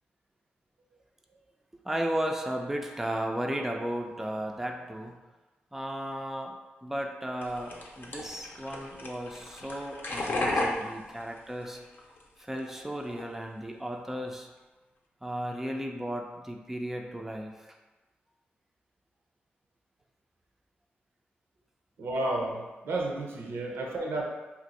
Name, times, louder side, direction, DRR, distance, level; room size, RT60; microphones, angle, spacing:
voice 1, 1.8-5.2 5.7-6.6 6.8-11.8 12.4-14.5 15.2-17.8, right 1 dB, 5° right, 2 dB, 0.4 m, -35 dB
sound 1, 7.4-12.2 12.5-13.2, left 2 dB, 60° left, 0.6 m, -34 dB
voice 2, 22.0-24.2, right 2 dB, 85° right, 0 dB, 0.5 m, -32 dB
2.5 x 2.3 x 4.0 m, 1.2 s
cardioid pair, 65°, 4 cm